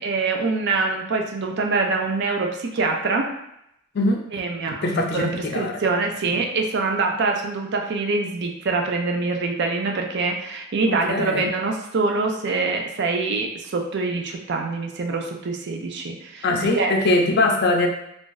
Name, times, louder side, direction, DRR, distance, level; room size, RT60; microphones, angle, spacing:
voice 1, 0.0-3.3 4.3-16.5 16.8-17.0, right 3 dB, 55° right, 3 dB, 0.5 m, -24 dB
voice 2, 4.8-5.7 10.8-11.5 16.4-17.9, left 2 dB, 55° left, 2 dB, 0.5 m, -22 dB
2.5 x 2.4 x 3.8 m, 0.79 s
head